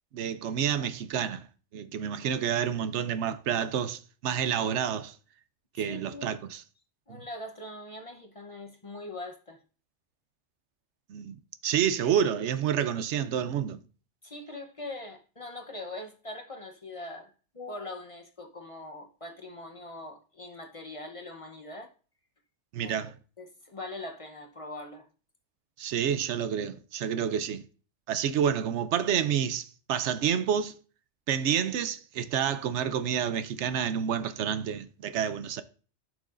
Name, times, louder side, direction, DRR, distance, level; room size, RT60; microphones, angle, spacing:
voice 1, 0.1-1.4 1.7-5.1 5.8-6.6 11.1-13.8 22.7-23.1 25.8-27.6 28.1-30.8 31.3-35.6, right 8 dB, 75° right, 0.9 m, -29 dB
voice 2, 5.7-6.3 7.1-9.6 14.2-17.3 17.5-21.9 22.8-23.0 23.4-25.1, left 2 dB, 30° left, 0.8 m, -42 dB
11.5 x 6.2 x 2.5 m
omnidirectional pair, 1.2 m